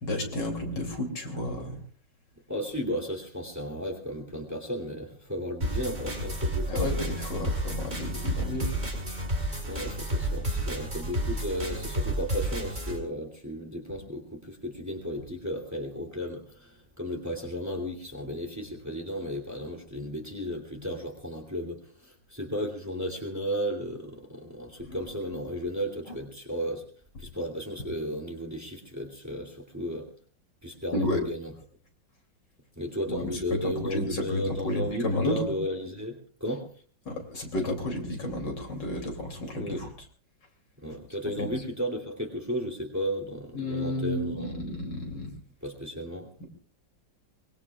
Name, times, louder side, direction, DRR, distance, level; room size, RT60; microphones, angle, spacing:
voice 1, 0.0-1.8 6.7-8.8 20.7-20.9 24.9-25.0 30.9-31.2 33.1-35.4 37.1-39.9 41.4-41.5 43.5-45.3, left 1 dB, 70° left, 2 dB, 3.7 m, -31 dB
voice 2, 2.5-6.8 9.7-26.9 27.2-30.1 30.6-31.5 32.8-36.7 39.5-39.8 40.8-44.6 45.6-46.3, equal, 10° right, 2 dB, 2.7 m, -34 dB
sound 1, 5.6-13.0, right 1 dB, 30° right, 5.7 m, -31 dB
24.0 x 22.0 x 2.4 m, 0.41 s
omnidirectional pair, 2.0 m